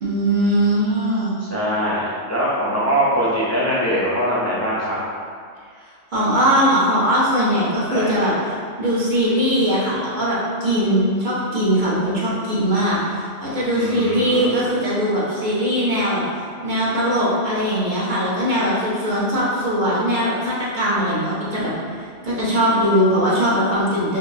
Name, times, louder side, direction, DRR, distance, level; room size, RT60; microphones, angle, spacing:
voice 1, 0.0-1.4 6.1-8.5 8.8-16.2 16.6-21.7 22.0-24.2, equal, 45° right, -8 dB, 0.9 m, -20 dB
voice 2, 1.4-5.0 7.9-8.3 13.7-14.6, equal, 20° left, -8 dB, 0.4 m, -22 dB
4.0 x 2.8 x 2.7 m, 2.1 s
omnidirectional pair, 1.2 m